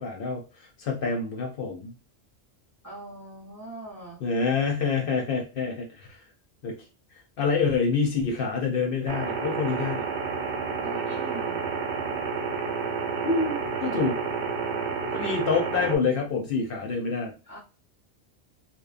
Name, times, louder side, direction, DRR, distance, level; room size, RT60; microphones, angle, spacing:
voice 1, 0.0-1.9 4.2-6.2 6.6-6.8 7.4-10.0 13.2-14.2 15.1-17.3, left 5 dB, 60° left, 1 dB, 0.7 m, -27 dB
voice 2, 2.8-4.2 10.8-11.7 17.5-17.6, right 2 dB, 20° right, -3 dB, 0.5 m, -42 dB
sound 1, 9.1-16.0, right 5 dB, 75° right, 0.8 m, -30 dB
2.9 x 2.0 x 2.4 m, 0.32 s
omnidirectional pair, 1.2 m